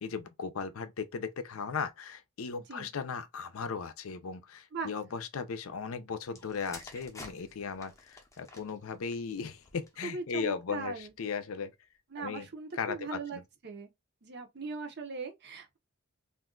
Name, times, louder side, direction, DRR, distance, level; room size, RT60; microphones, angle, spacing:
voice 1, 0.0-11.7 12.2-12.5 12.7-13.4, left 5 dB, 70° left, 0.5 m, -37 dB
sound 1, 6.3-10.1 10.9-11.2, left 2 dB, 15° left, 0.6 m, -51 dB
voice 2, 10.0-11.1 12.1-13.9 14.2-15.8, right 4 dB, 50° right, 0.7 m, -40 dB
2.5 x 2.3 x 3.7 m
head